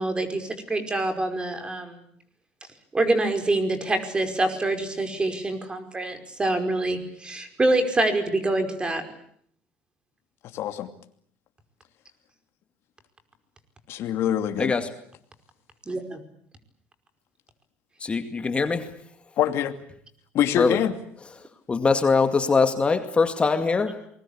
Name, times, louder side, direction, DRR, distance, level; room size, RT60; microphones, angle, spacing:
voice 1, 0.0-2.1 2.9-9.1 15.9-16.2, right 2 dB, 20° right, 5.1 m, -25 dB
voice 2, 10.5-10.9 13.9-14.7 19.4-19.7 20.3-20.9, left 11 dB, 60° left, 2.6 m, -24 dB
voice 3, 14.6-15.0 18.0-19.1 20.5-20.8 21.4-24.1, left 4 dB, 25° left, 2.2 m, -23 dB
28.0 x 21.0 x 8.7 m
supercardioid pair, 105°, 5 cm